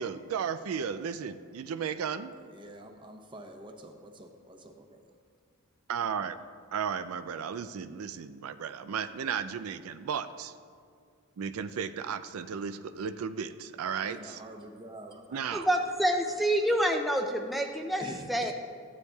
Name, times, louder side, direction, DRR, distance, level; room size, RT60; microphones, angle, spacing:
voice 1, 0.0-2.3 5.9-6.4 6.7-10.5 11.4-14.4 15.3-15.7, right 7 dB, 85° right, 11 dB, 0.4 m, -34 dB
voice 2, 2.5-5.1 14.0-15.5 18.0-18.5, right 1 dB, 20° right, 4 dB, 0.8 m, -46 dB
voice 3, 15.5-18.0 18.3-18.5, right 1 dB, ahead, 3 dB, 0.4 m, -27 dB
14.5 x 9.7 x 2.3 m, 2.3 s
head